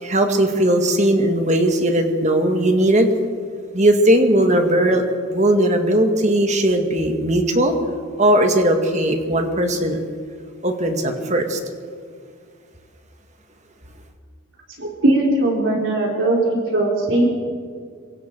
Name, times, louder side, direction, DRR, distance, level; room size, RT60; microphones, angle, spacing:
voice 1, 0.0-3.1 3.7-5.0 5.3-7.7 8.2-10.0 10.6-11.6, right 1 dB, 30° right, 4 dB, 2.1 m, -18 dB
voice 2, 14.8-16.4 16.7-17.3, right 2 dB, 60° right, -2 dB, 3.8 m, -19 dB
26.5 x 23.5 x 4.7 m, 2.1 s
head